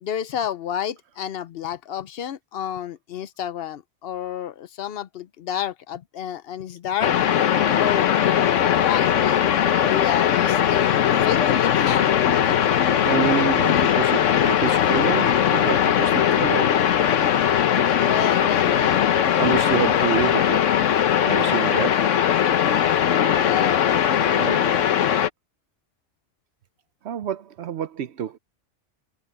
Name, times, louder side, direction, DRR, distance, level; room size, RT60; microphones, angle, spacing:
voice 1, 0.0-7.1 7.8-12.5 17.8-19.0 23.4-24.1, left 10 dB, 60° left, 0.8 m, -30 dB
sound 1, 7.0-25.3, left 9 dB, 90° left, 1.2 m, -20 dB
voice 2, 13.0-16.8 18.2-18.3 19.4-20.7 21.2-22.1 24.3-24.8 27.0-28.4, right 8 dB, 70° right, 0.9 m, -28 dB
omnidirectional pair, 1.2 m